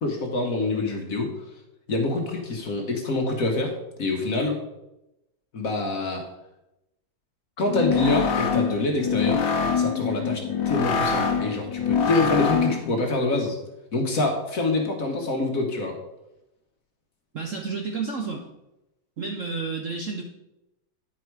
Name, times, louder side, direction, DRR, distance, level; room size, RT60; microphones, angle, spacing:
voice 1, 0.0-1.3 1.9-3.7 4.0-4.6 5.5-6.2 7.6-9.5 9.8-13.6 13.9-16.0, left 2 dB, 50° left, 2 dB, 1.4 m, -26 dB
sound 1, 7.6-12.9, left 6 dB, 80° left, 1.6 m, -24 dB
voice 2, 17.3-18.5 19.2-20.2, right 4 dB, 55° right, 0 dB, 0.9 m, -31 dB
9.7 x 4.9 x 4.6 m, 0.92 s
omnidirectional pair, 2.2 m